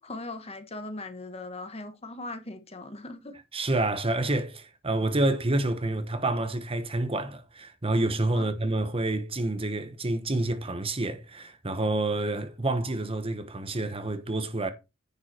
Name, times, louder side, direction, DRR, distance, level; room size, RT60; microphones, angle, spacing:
voice 1, 0.0-3.4 8.3-8.5, left 2 dB, 30° left, 1.3 m, -39 dB
voice 2, 3.5-14.7, right 2 dB, 30° right, 1.0 m, -28 dB
10.0 x 5.6 x 4.4 m
head